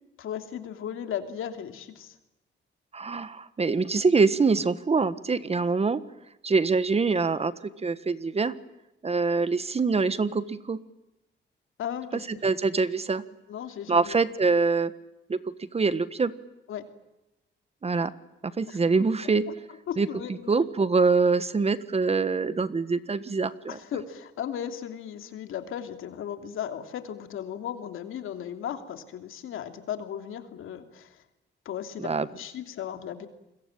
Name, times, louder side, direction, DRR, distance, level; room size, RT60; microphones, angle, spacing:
voice 1, 0.2-2.1 11.8-12.2 13.5-14.2 16.7-16.8 18.7-18.8 19.9-20.6 23.7-31.2 31.6-33.3, left 9 dB, 85° left, 7 dB, 3.0 m, -36 dB
voice 2, 2.9-6.0 6.4-7.5 7.8-8.5 9.0-10.8 12.3-13.2 13.9-14.9 15.3-16.3 17.8-18.1 18.6-19.4 20.0-20.1 20.5-23.8 32.0-32.3, right 4 dB, 30° right, 14 dB, 1.4 m, -24 dB
28.5 x 22.5 x 8.9 m, 0.94 s
cardioid pair, 105°, 20 cm